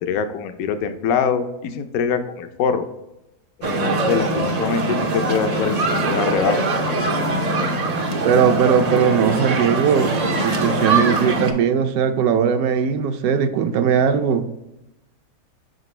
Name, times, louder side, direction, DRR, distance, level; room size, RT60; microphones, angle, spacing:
voice 1, 0.0-2.8 3.6-6.6, left 6 dB, 75° left, 8 dB, 1.0 m, -24 dB
sound 1, 3.6-11.5, right 2 dB, 60° right, 0.4 m, -22 dB
voice 2, 8.2-14.5, right 7 dB, 75° right, 8 dB, 1.0 m, -19 dB
5.7 x 5.2 x 3.2 m, 0.91 s
omnidirectional pair, 1.6 m